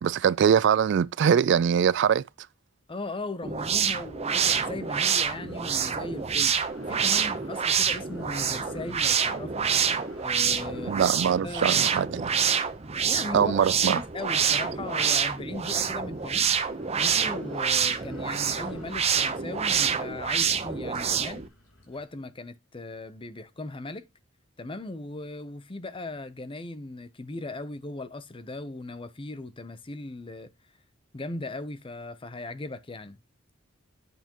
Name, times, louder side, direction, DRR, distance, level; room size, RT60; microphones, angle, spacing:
voice 1, 0.0-2.2 10.9-12.3 13.3-14.0, right 8 dB, 60° right, 0.3 m, -22 dB
voice 2, 2.9-9.7 10.2-11.1 11.4-11.9 13.1-13.5 13.9-16.5 17.0-21.5 21.9-24.1 24.6-30.5 31.1-33.2, left 2 dB, 25° left, 0.7 m, -38 dB
sound 1, 3.4-21.5, right 7 dB, 30° right, 0.8 m, -27 dB
sound 2, 3.6-22.0, left 1 dB, 80° left, 3.9 m, -54 dB
8.0 x 6.7 x 3.0 m
head